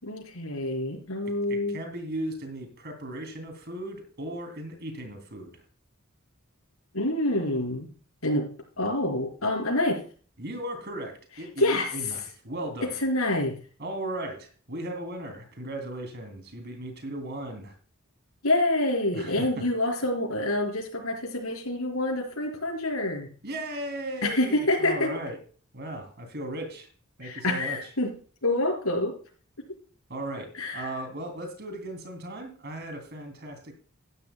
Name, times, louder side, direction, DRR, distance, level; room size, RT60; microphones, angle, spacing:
voice 1, 0.0-1.8 6.9-7.9 8.2-8.5 8.8-10.0 11.6-11.9 12.8-13.5 18.4-23.3 24.2-25.1 27.2-28.1 28.4-29.1 30.5-30.9, left 1 dB, 90° left, 1 dB, 4.7 m, -27 dB
voice 2, 1.3-5.6 10.4-13.0 13.8-17.7 19.1-19.6 23.4-25.4 25.7-26.9 27.2-27.8 30.1-33.7, right 1 dB, 50° right, 5 dB, 3.0 m, -37 dB
15.5 x 11.0 x 2.3 m, 0.41 s
head